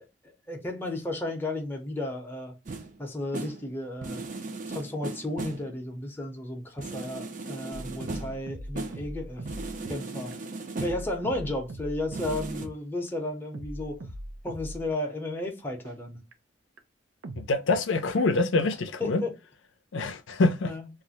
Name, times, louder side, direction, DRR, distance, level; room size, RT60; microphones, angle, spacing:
voice 1, 0.2-2.6 3.0-4.2 4.7-9.4 9.9-10.4 10.8-14.0 14.4-16.2 19.0-19.3 20.6-20.9, left 1 dB, 10° left, 0.6 m, -33 dB
sound 1, 2.7-3.0 3.3-3.7 4.0-5.8 6.8-8.5 8.8-9.1 9.5-11.2 12.1-12.7, right 3 dB, 45° right, 0.5 m, -37 dB
sound 2, 7.7-10.0 10.3-10.4 10.8-12.7 13.1-13.2 13.5-14.9 15.4-15.5 15.8-15.9 16.3-16.4 16.8-16.9 17.2-17.8 18.2-18.3, right 1 dB, 90° right, 0.5 m, -41 dB
voice 2, 17.4-19.2 19.9-20.7, left 3 dB, 75° left, 0.5 m, -25 dB
2.4 x 2.1 x 3.9 m
head